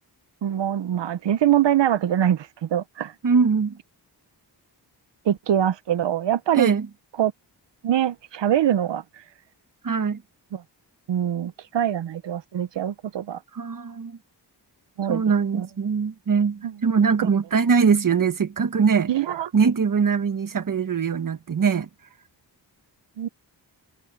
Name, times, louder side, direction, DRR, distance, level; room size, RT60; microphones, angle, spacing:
voice 1, 0.4-3.1 5.3-6.7 7.2-7.3 7.8-9.0 10.5-10.6 11.1-13.4 15.0-15.2 15.5-15.7 16.6-16.7 19.1-19.5 23.2-23.3, right 10 dB, 90° right, 0.7 m, -23 dB
voice 2, 3.2-3.8 6.5-6.9 9.8-10.2 13.5-14.2 15.1-19.1 19.5-21.9, right 5 dB, 50° right, 1.2 m, -22 dB
wide cardioid pair, 135°, 42 cm